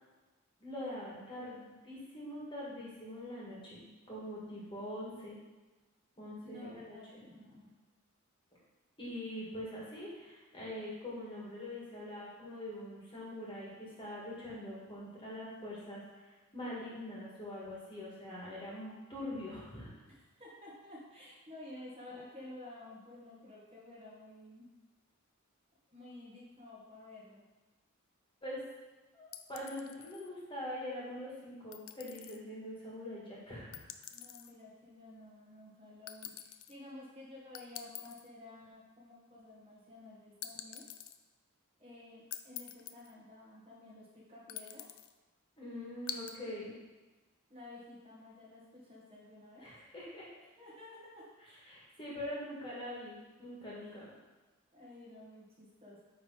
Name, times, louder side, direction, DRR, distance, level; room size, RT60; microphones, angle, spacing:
voice 1, 0.6-5.4 6.2-7.2 9.0-19.9 28.4-28.6 29.1-33.8 45.6-46.8 49.6-50.3 51.7-54.1, left 1 dB, 25° left, -6 dB, 1.9 m, -43 dB
voice 2, 6.5-7.7 20.1-24.7 25.9-27.4 34.1-40.9 41.8-44.9 47.5-49.7 50.6-51.3 53.8-54.0 54.7-56.0, left 2 dB, 30° right, -6 dB, 1.8 m, -52 dB
sound 1, 29.3-30.3 31.7-32.4 33.7-34.5 36.1-36.7 37.5-38.3 40.4-41.2 42.3-43.1 44.5-45.1 46.1-46.4, left 11 dB, 65° left, 0.4 m, -46 dB
9.5 x 3.5 x 4.0 m, 1.2 s
head